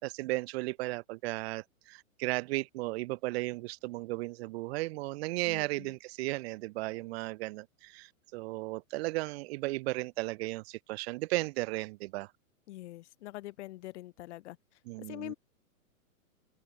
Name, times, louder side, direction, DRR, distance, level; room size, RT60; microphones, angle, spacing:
voice 1, 0.0-12.3 14.8-15.3, right 21 dB, 45° right, 2.8 m, -35 dB
voice 2, 5.5-5.9 12.7-14.6 15.1-15.3, left 17 dB, 50° left, 4.2 m, -44 dB
open air
hypercardioid pair, 135°, 43 cm